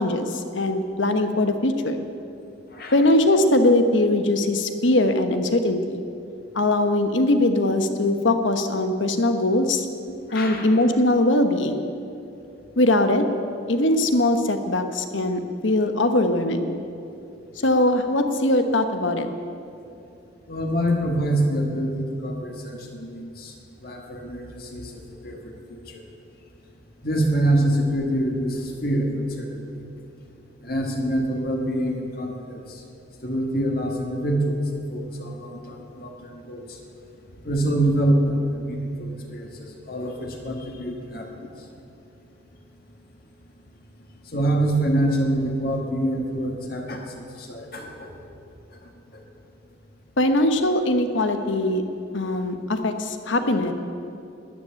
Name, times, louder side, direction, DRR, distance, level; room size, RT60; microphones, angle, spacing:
voice 1, 0.0-2.0 2.9-6.0 6.5-9.9 10.3-11.9 12.8-13.2 13.7-16.7 17.6-19.3 50.2-51.8 52.1-53.7, left 1 dB, 75° left, 7 dB, 1.1 m, -21 dB
voice 2, 10.1-10.7 20.5-23.5 23.8-26.1 27.0-29.6 30.6-32.8 33.2-36.8 37.4-41.5 44.3-48.1 48.8-48.9 52.2-52.3 53.5-53.6, right 1 dB, 50° left, 1 dB, 1.7 m, -26 dB
13.0 x 10.0 x 9.0 m, 2.7 s
head